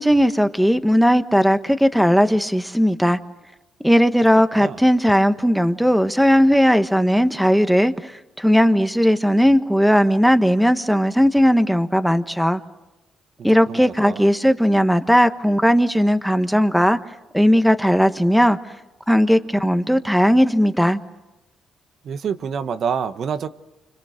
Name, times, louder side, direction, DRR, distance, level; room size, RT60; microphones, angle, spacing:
voice 1, 0.0-3.2 3.8-8.1 8.4-12.6 13.4-17.0 17.3-18.6 19.1-21.0, equal, ahead, 1.3 m, -17 dB
voice 2, 13.7-14.3 22.0-23.5, right 7 dB, 60° right, 1.2 m, -27 dB
29.5 x 26.0 x 6.6 m
cardioid pair, 90°, 0 cm